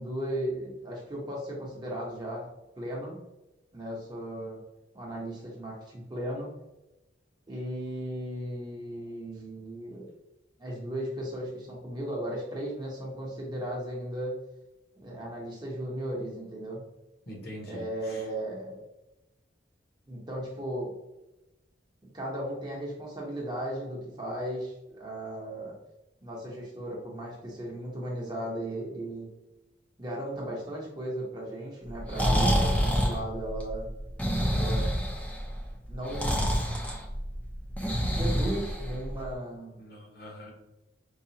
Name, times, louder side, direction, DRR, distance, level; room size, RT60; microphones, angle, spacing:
voice 1, 0.0-2.5 2.7-3.2 3.7-4.6 4.9-6.5 7.5-10.1 10.6-14.4 15.0-16.9 17.7-18.8 20.1-20.9 22.0-25.8 26.2-29.3 30.0-33.9 34.5-34.9 35.9-36.5 38.1-39.8, right 1 dB, 20° right, -3 dB, 0.8 m, -36 dB
voice 2, 17.3-18.3 39.7-40.5, equal, 55° left, -1 dB, 1.1 m, -44 dB
Breathing, 31.9-39.3, equal, 10° left, 0.5 m, -28 dB
4.7 x 2.4 x 2.8 m, 0.97 s
head